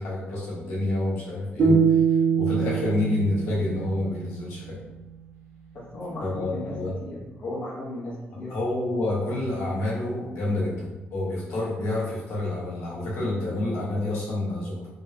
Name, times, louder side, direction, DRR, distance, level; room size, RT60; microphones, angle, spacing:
voice 1, 0.0-4.8 6.2-6.9 8.5-14.7, left 2 dB, 80° left, -7 dB, 1.1 m, -28 dB
sound 1, 1.6-4.7, right 6 dB, 75° right, 1.0 m, -23 dB
voice 2, 5.7-8.6, left 1 dB, 45° left, -7 dB, 0.7 m, -36 dB
3.5 x 2.1 x 2.7 m, 1.1 s
cardioid pair, 180°, 4 cm